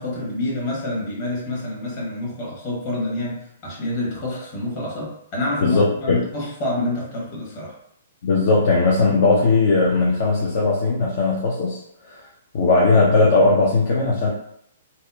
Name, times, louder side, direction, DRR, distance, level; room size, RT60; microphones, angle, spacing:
voice 1, 0.0-3.4 3.6-7.7, left 1 dB, 40° left, -4 dB, 1.1 m, -27 dB
voice 2, 5.6-6.2 8.2-11.8 12.0-12.3 12.5-14.3, left 3 dB, 55° left, -4 dB, 0.5 m, -18 dB
2.7 x 2.0 x 2.2 m, 0.73 s
hypercardioid pair, 125°, 0 cm